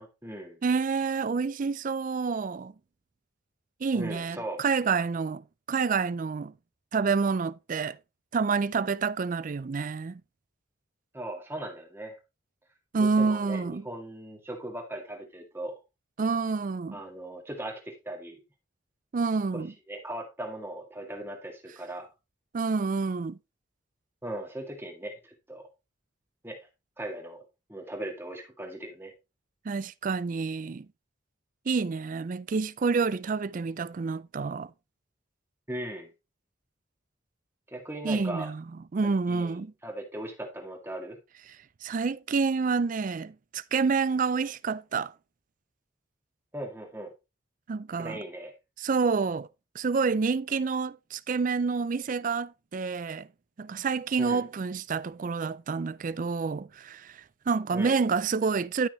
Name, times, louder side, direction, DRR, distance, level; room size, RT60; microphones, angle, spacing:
voice 1, 0.0-0.6 3.9-4.6 11.1-12.2 13.0-15.8 16.9-18.4 19.5-22.1 24.2-25.7 26.4-26.7 27.0-27.4 27.7-29.1 35.7-36.1 37.7-38.5 39.0-41.2 46.5-47.1 48.0-48.5 54.2-54.4 57.7-58.0, right 1 dB, 10° right, 2.0 m, -38 dB
voice 2, 0.6-2.7 3.8-6.5 6.9-8.0 8.3-10.2 12.9-13.8 16.2-17.0 19.1-19.7 22.5-23.4 29.7-30.9 31.7-34.7 38.0-38.6 38.9-39.7 41.8-45.1 47.7-48.2 48.8-49.5 49.7-53.3 53.6-58.9, right 4 dB, 40° right, 0.4 m, -28 dB
11.5 x 6.1 x 3.1 m
head